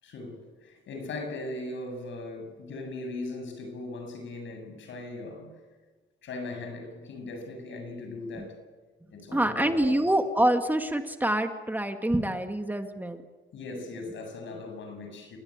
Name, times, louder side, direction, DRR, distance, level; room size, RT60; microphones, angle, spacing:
voice 1, 0.0-5.5 6.2-8.6 9.1-10.0 13.5-15.4, left 2 dB, 70° left, 7.9 m, -39 dB
voice 2, 9.3-13.2, right 1 dB, 10° right, 2.1 m, -26 dB
29.5 x 17.5 x 9.1 m
cardioid pair, 90°, 20 cm